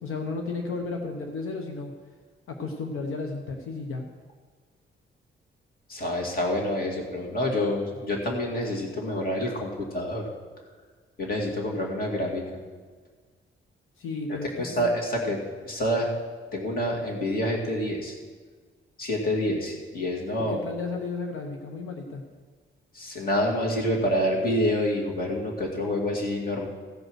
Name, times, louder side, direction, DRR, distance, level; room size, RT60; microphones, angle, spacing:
voice 1, 0.0-1.9 2.5-4.1 14.0-14.9 20.5-22.2, left 3 dB, 90° left, 3 dB, 1.1 m, -33 dB
voice 2, 5.9-10.3 11.2-12.6 14.4-16.1 16.5-18.1 19.0-20.6 22.9-26.7, left 1 dB, 45° left, -1 dB, 2.3 m, -27 dB
15.5 x 5.3 x 6.4 m, 1.5 s
wide cardioid pair, 150°, 21 cm